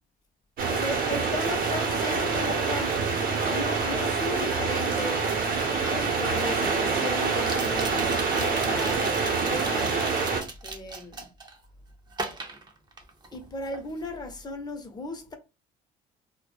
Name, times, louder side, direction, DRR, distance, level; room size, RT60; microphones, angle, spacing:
sound 1, 0.6-10.4, right 4 dB, 60° right, 0.8 m, -26 dB
voice 1, 0.7-3.0 3.4-5.3 5.8-10.0 10.6-11.3 13.3-15.3, left 2 dB, 25° left, 0.7 m, -36 dB
sound 2, 7.4-11.6 12.1-13.4 13.7-14.1, right 3 dB, 25° right, 0.6 m, -38 dB
2.2 x 2.1 x 3.1 m
cardioid pair, 110°, 17 cm